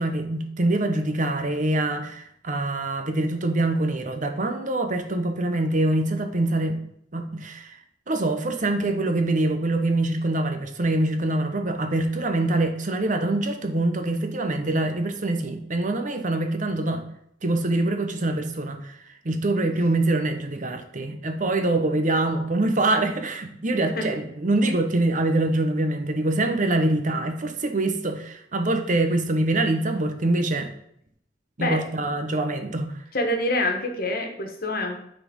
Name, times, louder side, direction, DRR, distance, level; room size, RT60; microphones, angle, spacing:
voice 1, 0.0-6.8 7.1-7.8 8.1-17.0 17.4-19.0 19.2-30.7 31.6-33.0, right 2 dB, 45° right, 6 dB, 0.9 m, -24 dB
voice 2, 31.6-32.1 33.1-35.0, left 1 dB, 55° left, 3 dB, 1.6 m, -27 dB
8.8 x 4.3 x 5.3 m, 0.72 s
head